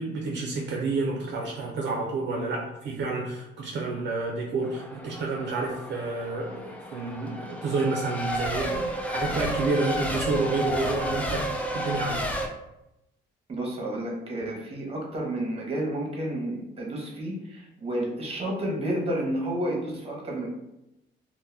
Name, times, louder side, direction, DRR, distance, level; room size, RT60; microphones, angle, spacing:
voice 1, 0.0-12.2, right 3 dB, 60° right, -1 dB, 0.5 m, -29 dB
Race car auto racing / Accelerating revving vroom / Mechanisms, 4.6-12.5, equal, 5° left, 0.3 m, -31 dB
voice 2, 13.5-20.5, right 1 dB, 30° right, -1 dB, 0.9 m, -31 dB
2.2 x 2.1 x 3.1 m, 0.89 s
cardioid pair, 90°, 20 cm